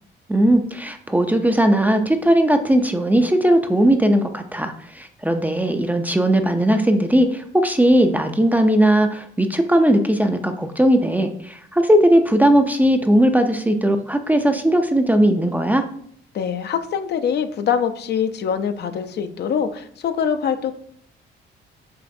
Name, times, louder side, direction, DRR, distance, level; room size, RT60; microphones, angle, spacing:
voice 1, 0.3-15.8, right 1 dB, 10° right, 6 dB, 0.4 m, -18 dB
voice 2, 16.3-20.7, left 7 dB, 60° left, 9 dB, 0.4 m, -23 dB
6.2 x 2.5 x 2.6 m, 0.63 s
cardioid pair, 90°, 20 cm